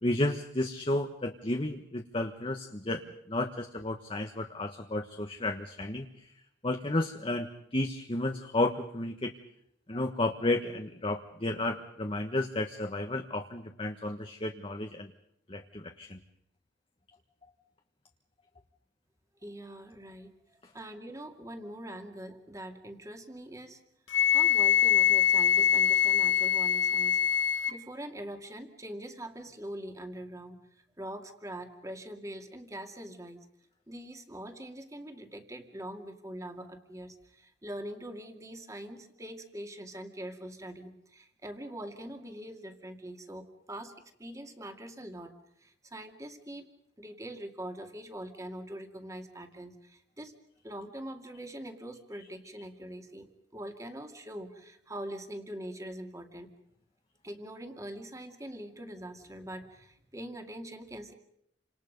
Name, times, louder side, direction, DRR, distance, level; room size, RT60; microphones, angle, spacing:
voice 1, 0.0-6.3 6.6-9.3 9.9-15.1 15.5-16.2, left 2 dB, 30° left, 4 dB, 1.3 m, -32 dB
voice 2, 19.4-20.4 20.7-23.8 24.3-30.7 31.0-33.4 33.9-45.4 45.6-46.7 47.0-50.3 50.6-56.5 57.2-61.1, right 1 dB, 20° right, 5 dB, 2.3 m, -43 dB
Wind instrument woodwind instrument, 24.1-27.8, left 9 dB, 85° left, 0.9 m, -24 dB
30.0 x 26.5 x 5.3 m, 0.73 s
head